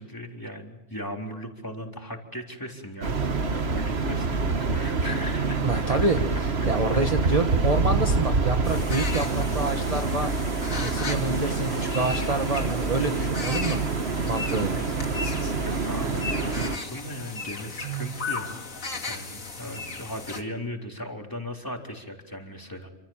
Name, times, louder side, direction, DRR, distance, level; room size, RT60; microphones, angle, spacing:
voice 1, 0.0-6.1 15.6-18.6 19.0-22.9, equal, 15° left, 1 dB, 3.9 m, -37 dB
sound 1, 3.0-16.8, right 4 dB, 55° right, 1.7 m, -26 dB
sound 2, 3.1-3.6 4.3-4.4 4.9-5.9 7.3-8.3 11.9-12.3 13.5-14.3 15.5-16.3 17.4-18.3, right 15 dB, 85° right, 1.9 m, -38 dB
voice 2, 5.6-10.3 10.8-13.8 14.3-14.7, right 2 dB, 30° right, 5 dB, 1.3 m, -27 dB
sound 3, 8.6-20.4, left 4 dB, 90° left, 2.9 m, -36 dB
28.5 x 27.0 x 7.4 m, 0.95 s
omnidirectional pair, 1.4 m